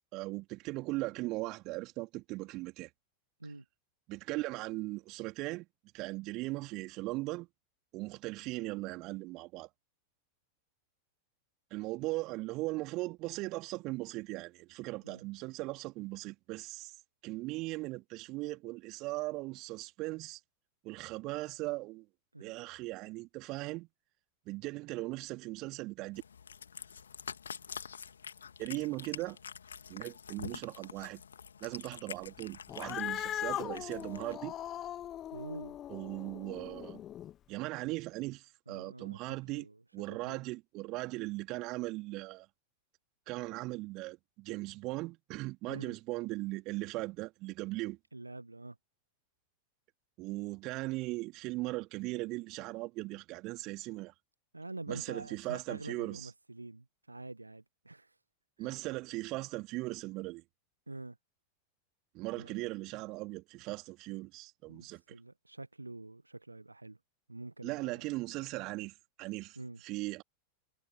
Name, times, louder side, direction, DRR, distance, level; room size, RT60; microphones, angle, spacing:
voice 1, 0.1-2.9 4.1-5.6 5.9-7.5 7.9-9.7 11.7-17.0 17.2-20.4 20.8-22.0 22.4-23.9 24.4-26.2 28.6-29.4 29.9-31.2 31.6-34.5 35.9-37.0 37.5-39.7 39.9-42.5 43.3-48.0 50.2-54.1 54.9-56.3 58.6-60.4 62.1-65.2 67.6-70.2, right 21 dB, 40° right, 3.2 m, -38 dB
Cat, 26.1-34.3, left 7 dB, 70° left, 2.3 m, -47 dB
Cat 2, 32.7-37.3, left 11 dB, 30° left, 0.3 m, -40 dB
voice 2, 32.9-33.2 35.3-35.8 38.7-39.2 39.5-39.8 40.2-40.4 45.7-45.9 48.1-48.8 54.5-58.1 58.6-58.8 60.9-61.2 62.3-62.8 64.7-67.0 67.3-68.0 69.6-69.8, right 2 dB, 85° right, 1.4 m, -46 dB
figure-of-eight pair, 90°, 0 cm